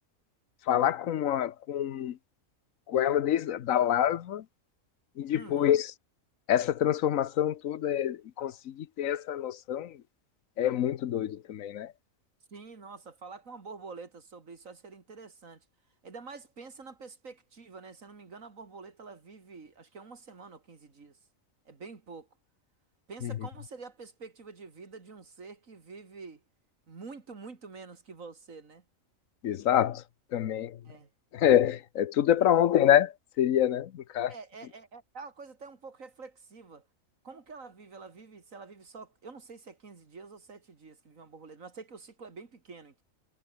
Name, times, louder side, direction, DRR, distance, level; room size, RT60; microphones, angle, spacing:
voice 1, 0.7-2.2 2.9-4.4 5.2-5.9 6.5-10.0 10.6-11.9 23.2-23.3 29.4-30.0 30.3-30.8 31.3-34.3, left 10 dB, 80° left, 1.2 m, -26 dB
voice 2, 5.3-5.8 12.5-15.6 16.0-21.2 21.7-22.3 23.1-26.4 26.9-28.8 30.8-31.1 34.3-36.8 37.2-43.0, right 4 dB, 80° right, 2.9 m, -47 dB
omnidirectional pair, 1.4 m